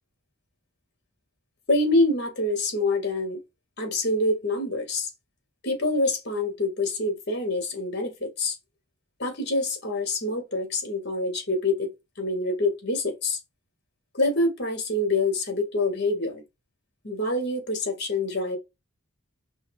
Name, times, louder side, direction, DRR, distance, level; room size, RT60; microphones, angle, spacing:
voice 1, 1.7-3.4 3.8-5.1 5.6-8.6 9.2-13.4 14.1-16.4 17.0-18.6, left 2 dB, 50° left, 1.4 m, -26 dB
5.5 x 2.1 x 2.5 m
head